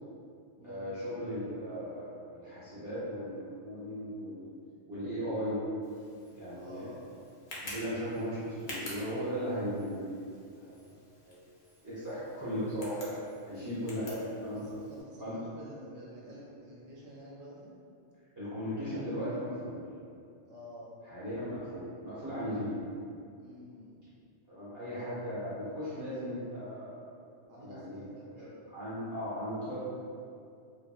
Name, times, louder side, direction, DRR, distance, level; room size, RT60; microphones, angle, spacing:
voice 1, 0.6-4.6 4.9-5.6 6.3-6.9 7.6-10.3 10.6-10.9 11.3-11.4 11.8-13.1 13.4-14.6 15.2-15.4 18.4-19.8 21.0-22.8 24.5-27.1 27.6-28.1 28.4-29.8, equal, 20° right, -15 dB, 0.5 m, -37 dB
Tick, 5.8-15.0, left 1 dB, 50° left, 0.7 m, -49 dB
voice 2, 6.5-7.1 12.3-12.4 13.6-14.0 14.5-17.7 20.5-20.9 23.4-24.0 27.5-28.6, equal, 85° right, -6 dB, 1.0 m, -50 dB
2.9 x 2.5 x 2.3 m, 2.4 s
omnidirectional pair, 1.2 m